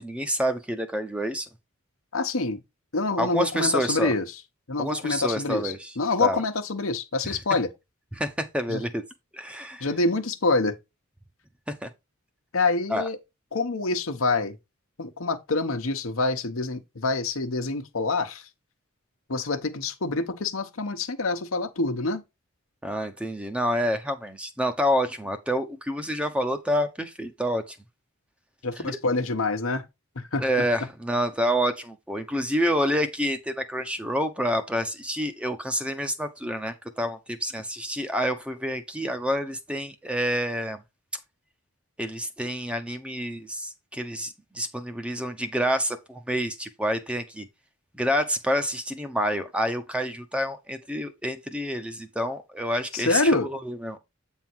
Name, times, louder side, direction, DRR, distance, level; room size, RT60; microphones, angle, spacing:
voice 1, 0.0-1.5 3.2-4.1 4.8-5.9 6.2-6.4 7.2-7.3 8.1-9.0 9.3-9.9 11.7-11.9 12.9-13.1 22.8-27.8 28.8-29.0 30.4-40.8 42.0-47.5 47.9-54.0, equal, 5° right, 0.8 m, -28 dB
voice 2, 2.1-2.6 2.9-4.2 4.7-7.7 8.7-8.8 9.8-10.7 12.5-13.2 13.5-14.5 15.0-18.4 19.3-22.2 28.6-29.8 30.2-30.4 52.9-53.5, left 3 dB, 75° left, 1.1 m, -26 dB
8.3 x 3.7 x 4.5 m
head